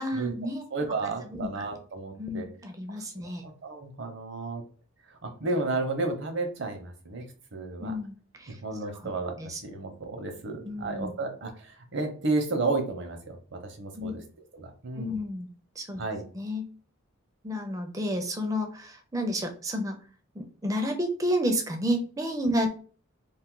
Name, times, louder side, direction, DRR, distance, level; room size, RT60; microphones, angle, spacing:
voice 1, 0.0-0.7 1.3-1.5 2.2-3.4 7.8-8.5 9.4-9.6 10.6-11.1 14.0-14.2 15.0-15.5 15.8-16.0 16.3-16.6 17.4-19.9 20.4-22.7, equal, 15° right, 5 dB, 0.4 m, -30 dB
voice 2, 0.7-2.5 3.4-4.6 5.2-7.2 7.5-7.9 8.5-9.3 9.6-14.2 14.5-15.2 16.0-16.2, right 3 dB, 55° right, 4 dB, 0.7 m, -32 dB
2.5 x 2.4 x 3.7 m, 0.40 s
head